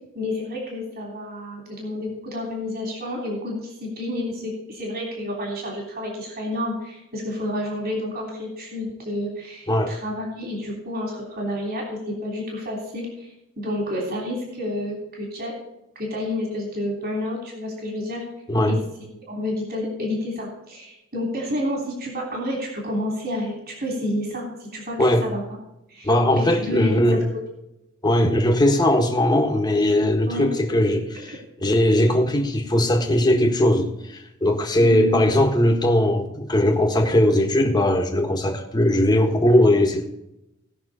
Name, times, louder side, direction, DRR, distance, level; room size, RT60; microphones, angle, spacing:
voice 1, 0.1-13.3 13.6-15.5 15.9-18.2 18.7-18.8 19.3-25.0 25.2-25.4 25.9-27.2 30.3-30.5 31.3-31.4 34.8-35.3, left 1 dB, 50° right, 3.4 m, -30 dB
voice 2, 26.0-27.2 28.0-40.0, left 1 dB, 20° left, 1.5 m, -19 dB
18.5 x 6.3 x 4.2 m
head